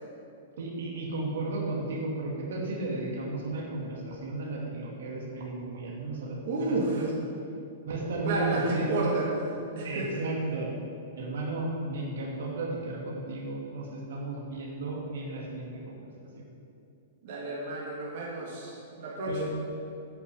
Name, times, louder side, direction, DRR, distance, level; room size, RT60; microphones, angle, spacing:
voice 1, 0.6-7.1 7.8-9.1 9.8-10.7 11.2-16.0 16.3-16.5 19.3-19.4, right 2 dB, 80° right, -2 dB, 2.5 m, -34 dB
voice 2, 6.5-7.0 8.2-9.4 9.8-10.2 17.2-19.4, right 2 dB, 55° right, -5 dB, 1.9 m, -31 dB
9.1 x 5.4 x 7.9 m, 2.6 s
hypercardioid pair, 155°, 0 cm